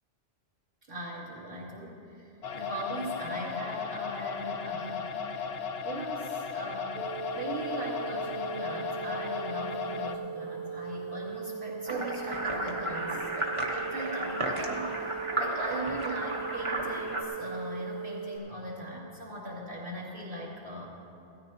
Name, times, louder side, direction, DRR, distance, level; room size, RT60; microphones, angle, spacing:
voice 1, 0.9-5.6 5.8-20.9, right 1 dB, 55° right, -7 dB, 2.8 m, -39 dB
sound 1, 2.4-10.1, left 6 dB, 70° left, 0.8 m, -36 dB
sound 2, 6.9-18.4, right 7 dB, 80° right, 1.8 m, -39 dB
sound 3, 11.9-17.2, right 1 dB, 30° right, 1.1 m, -33 dB
17.0 x 13.5 x 2.9 m, 2.7 s
omnidirectional pair, 1.1 m